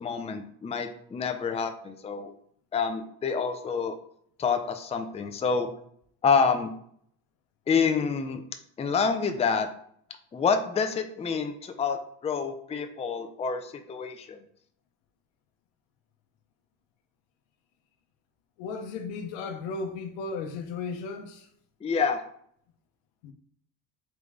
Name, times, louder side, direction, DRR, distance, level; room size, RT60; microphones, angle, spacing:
voice 1, 0.0-2.3 2.7-4.0 4.4-5.7 6.2-6.7 7.7-8.4 8.8-9.7 10.3-14.4 21.8-22.2, left 5 dB, 15° left, 0.4 m, -27 dB
voice 2, 18.6-21.5 23.2-23.3, left 4 dB, 85° left, 0.8 m, -35 dB
3.9 x 3.1 x 3.4 m
supercardioid pair, 85°, 43 cm